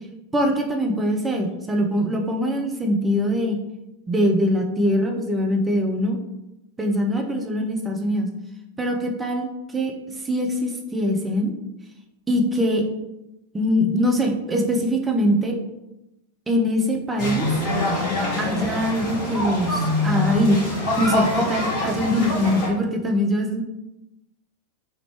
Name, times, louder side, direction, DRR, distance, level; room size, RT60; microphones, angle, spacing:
voice 1, 0.3-3.6 4.1-6.2 6.8-8.3 8.8-9.9 10.2-11.5 12.3-12.8 13.5-15.6 16.5-17.5 18.4-20.6 21.0-23.6, equal, 15° right, 2 dB, 0.5 m, -22 dB
sound 1, 17.2-22.7, left 2 dB, 45° left, 1.3 m, -25 dB
3.5 x 2.5 x 3.1 m, 0.92 s
figure-of-eight pair, 90°, 0 cm